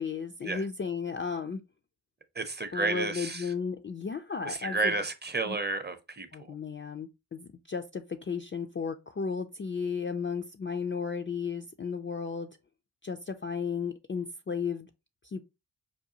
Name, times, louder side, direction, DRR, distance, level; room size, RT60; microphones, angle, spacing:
voice 1, 0.0-1.6 2.7-5.0 5.5-5.6 6.3-12.5 13.0-14.9 15.2-15.4, left 5 dB, 30° left, 0.4 m, -34 dB
voice 2, 2.3-3.5 4.4-6.5, right 3 dB, 20° right, 0.7 m, -32 dB
4.8 x 2.3 x 2.7 m
cardioid pair, 50°, 45 cm